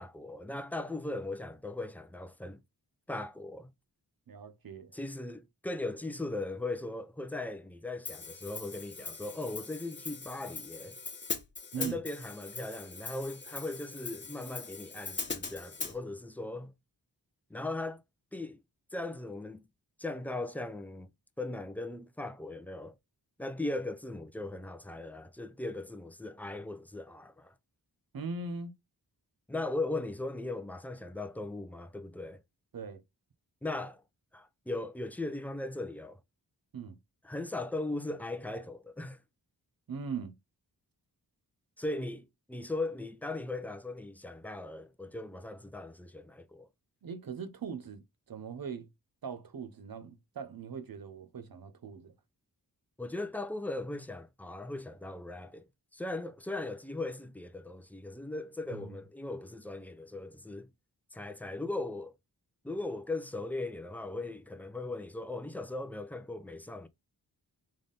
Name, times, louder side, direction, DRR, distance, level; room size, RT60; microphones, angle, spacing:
voice 1, 0.0-2.6 3.1-3.7 4.9-10.9 11.8-16.7 17.5-18.0 18.3-18.6 18.9-19.6 20.0-21.1 21.4-22.9 23.4-27.5 29.5-32.4 33.6-34.0 34.3-36.2 37.2-39.2 41.8-46.7 53.0-60.7 61.1-62.1 62.6-66.9, left 2 dB, 5° left, 0.6 m, -38 dB
voice 2, 4.3-4.9 11.7-12.0 28.1-28.7 32.7-33.0 36.7-37.0 39.9-40.4 47.0-48.9 49.2-52.1 58.7-59.0, right 5 dB, 60° right, 0.8 m, -40 dB
Hi-hat, 8.0-15.9, left 4 dB, 30° left, 1.0 m, -41 dB
3.7 x 3.4 x 3.9 m
cardioid pair, 65°, 40 cm